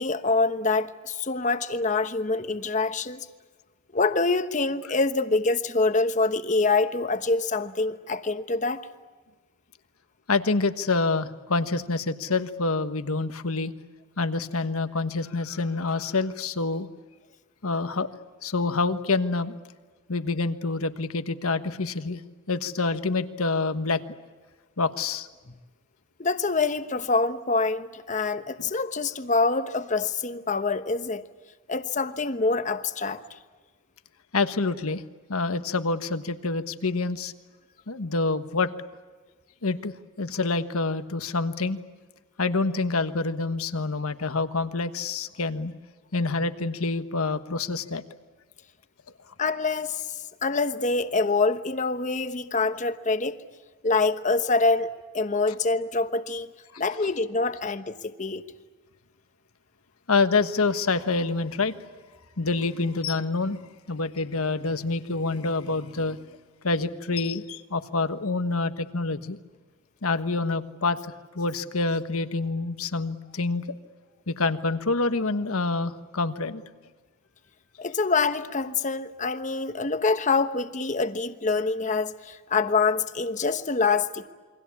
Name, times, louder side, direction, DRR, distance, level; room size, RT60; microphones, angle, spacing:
voice 1, 0.0-3.3 3.9-8.8 26.2-31.2 31.7-33.2 49.4-53.4 53.8-54.9 55.1-56.5 56.8-58.4 77.8-84.3, left 3 dB, 35° left, 1.1 m, -25 dB
voice 2, 10.3-13.7 14.2-16.9 17.6-18.1 18.4-19.6 20.1-22.2 22.5-24.0 24.8-25.3 34.3-35.0 35.3-37.3 37.9-38.7 39.6-41.8 42.4-45.7 46.1-48.0 56.7-56.8 60.1-61.7 62.4-63.6 63.9-66.2 66.6-69.4 70.0-71.0 71.3-73.8 74.3-76.6, left 3 dB, 90° left, 1.3 m, -27 dB
28.5 x 23.5 x 8.5 m
head